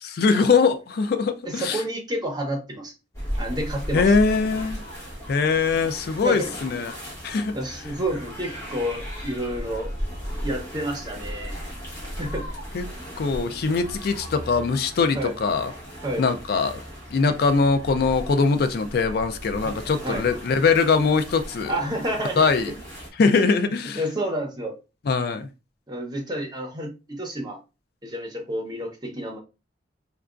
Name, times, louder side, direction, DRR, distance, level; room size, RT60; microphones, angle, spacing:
voice 1, 0.0-1.8 3.9-4.8 5.3-7.0 7.2-7.5 12.7-12.8 13.2-15.7 16.2-16.8 17.1-21.7 22.4-22.7 23.2-24.0 25.1-25.5, left 4 dB, 60° left, 0.3 m, -22 dB
voice 2, 1.4-2.9 3.4-4.1 6.2-6.5 7.5-9.9 10.4-11.5 12.2-12.6 15.1-15.3 16.0-16.3 19.6-19.7 20.0-20.2 21.7-22.4 24.0-24.7 25.9-27.6 28.0-29.4, right 1 dB, 25° right, 0.8 m, -29 dB
sound 1, 3.1-23.1, equal, 15° left, 1.4 m, -36 dB
4.6 x 2.3 x 2.4 m
head